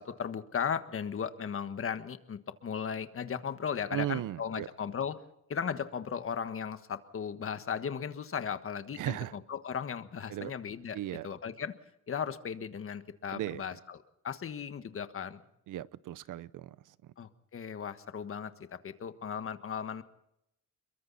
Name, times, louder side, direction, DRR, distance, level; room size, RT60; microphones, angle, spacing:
voice 1, 0.0-5.2 5.5-11.0 11.2-11.7 12.1-14.0 14.2-15.4 17.2-18.5 18.8-20.0, left 7 dB, 45° left, 10 dB, 1.5 m, -36 dB
voice 2, 3.9-4.7 9.0-9.3 10.3-10.5 10.9-11.3 13.3-13.6 15.7-16.8, right 13 dB, 75° right, 19 dB, 0.8 m, -36 dB
28.5 x 22.5 x 4.2 m, 0.81 s
cardioid pair, 130°, 31 cm